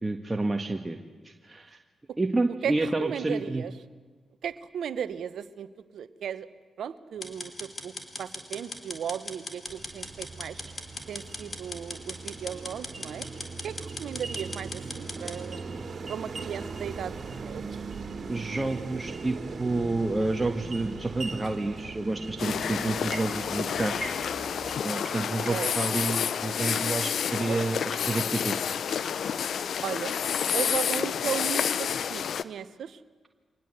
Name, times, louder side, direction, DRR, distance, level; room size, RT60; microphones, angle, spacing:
voice 1, 0.0-1.0 1.2-1.8 2.2-3.6 18.3-24.1 24.8-28.5, right 2 dB, 25° right, 4 dB, 1.7 m, -29 dB
voice 2, 2.6-3.7 4.4-5.7 5.9-6.5 6.8-7.9 8.2-10.6 11.1-13.3 13.6-15.7 16.1-17.6 25.5-25.7 27.5-27.6 29.8-30.1 30.5-33.0, right 8 dB, 70° right, 15 dB, 1.0 m, -36 dB
sound 1, 7.2-15.4, left 2 dB, 40° left, 3.9 m, -39 dB
sound 2, 9.7-24.8, right 4 dB, 55° right, 2.8 m, -39 dB
sound 3, 22.4-32.4, left 8 dB, 70° left, 0.7 m, -29 dB
24.0 x 19.5 x 8.0 m, 1.4 s
hypercardioid pair, 40°, 0 cm